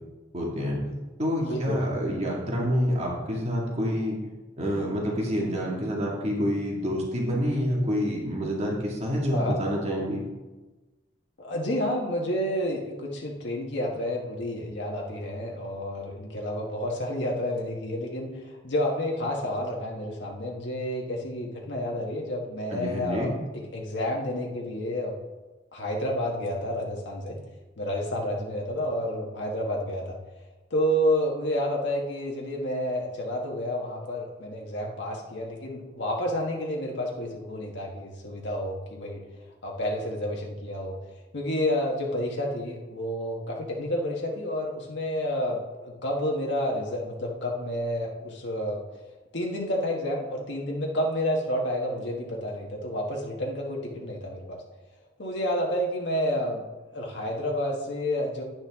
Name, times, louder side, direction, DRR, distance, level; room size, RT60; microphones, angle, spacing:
voice 1, 0.3-0.8 1.2-4.2 4.6-10.2 22.7-23.3, equal, 35° right, -3 dB, 2.0 m, -27 dB
voice 2, 1.4-1.9 9.3-9.6 11.4-25.1 25.7-27.4 27.8-30.2 30.7-39.2 39.6-41.0 41.3-48.8 49.3-54.6 55.2-56.6 56.9-58.4, equal, 70° left, -1 dB, 1.4 m, -30 dB
10.5 x 8.8 x 3.6 m, 1.2 s
head